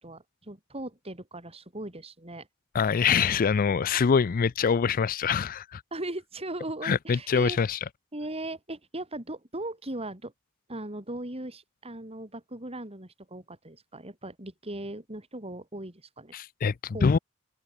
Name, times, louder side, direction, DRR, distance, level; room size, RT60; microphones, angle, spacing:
voice 1, 0.0-2.5 5.9-7.6 8.1-10.3 10.7-16.3 16.9-17.2, right 1 dB, 30° right, 5.3 m, -38 dB
voice 2, 2.7-5.8 6.8-7.8 16.3-17.2, left 6 dB, 40° left, 0.4 m, -24 dB
head